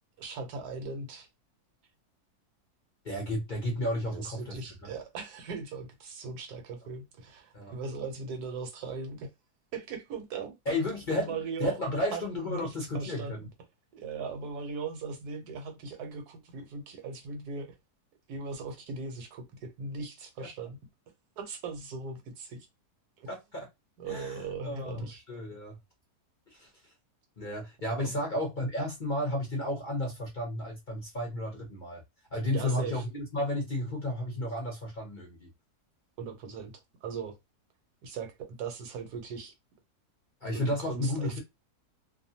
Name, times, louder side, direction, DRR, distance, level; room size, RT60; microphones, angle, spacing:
voice 1, 0.2-1.3 4.1-9.3 9.7-10.9 11.2-11.8 12.1-13.3 13.9-17.8 18.3-20.8 21.4-22.6 23.2-23.3 24.0-25.2 32.5-33.0 36.2-36.7 37.0-37.4 38.0-39.5 40.5-41.4, right 4 dB, 80° right, 1.3 m, -39 dB
voice 2, 3.0-4.6 7.5-7.8 10.7-13.4 20.4-20.5 23.3-23.7 24.1-25.8 26.5-26.7 27.4-32.0 32.3-35.5 40.4-41.4, left 1 dB, 40° left, 0.7 m, -33 dB
2.7 x 2.2 x 2.7 m
omnidirectional pair, 1.7 m